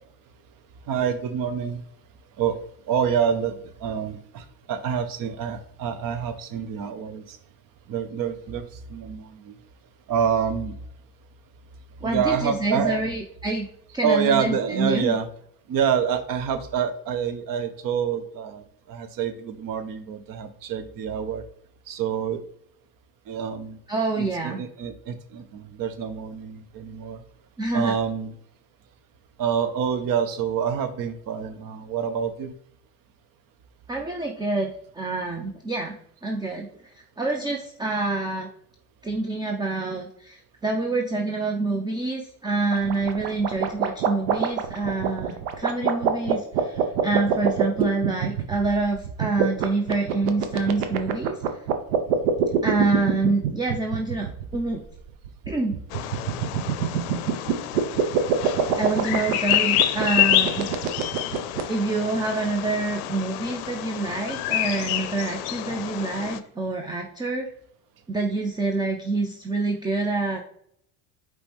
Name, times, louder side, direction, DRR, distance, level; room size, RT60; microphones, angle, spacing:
voice 1, 0.9-1.8 2.4-2.6 2.9-7.4 7.9-9.6 10.1-10.8 12.0-13.1 14.0-15.3 15.7-21.4 21.9-22.4 23.3-23.8 24.2-27.2 27.7-28.3 29.4-32.5, right 7 dB, 45° right, 10 dB, 0.8 m, -27 dB
voice 2, 12.0-13.6 13.9-15.2 23.9-24.6 27.6-27.9 33.9-35.9 36.2-36.7 37.2-38.5 39.0-51.4 52.6-54.8 55.5-55.8 58.8-60.7 61.7-67.5 68.1-70.4, right 3 dB, 10° right, 2 dB, 0.4 m, -26 dB
sound 1, 42.7-61.6, right 10 dB, 85° right, 0.8 m, -25 dB
Bird vocalization bird call bird song, 55.9-66.4, left 13 dB, 70° left, 0.6 m, -28 dB
5.0 x 3.1 x 3.1 m, 0.66 s
supercardioid pair, 100°, 45 cm